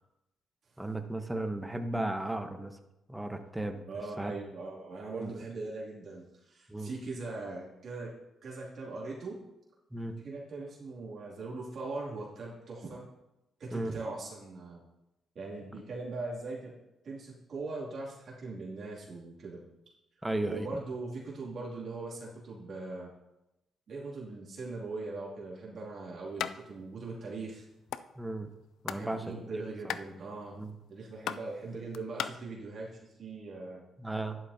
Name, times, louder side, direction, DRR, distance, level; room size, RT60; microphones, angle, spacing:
voice 1, 0.8-2.8 3.1-3.8 4.2-4.3 5.2-5.3 6.7-6.9 9.9-10.2 13.7-13.9 20.2-20.7 28.2-28.5 28.8-29.9 30.6-30.7 34.0-34.4, right 1 dB, 10° right, 6 dB, 1.1 m, -35 dB
voice 2, 3.9-8.1 8.4-9.4 10.2-13.0 13.6-14.8 15.3-16.8 17.0-19.6 20.4-23.1 23.9-27.7 28.9-30.6 30.9-33.8, right 3 dB, 60° right, -5 dB, 2.7 m, -40 dB
sound 1, 26.4-26.5 26.9-27.0 27.2-28.0 28.5-29.1 29.3-32.3, left 10 dB, 80° left, 0.4 m, -37 dB
11.5 x 11.0 x 2.8 m, 0.92 s
cardioid pair, 75°, 0 cm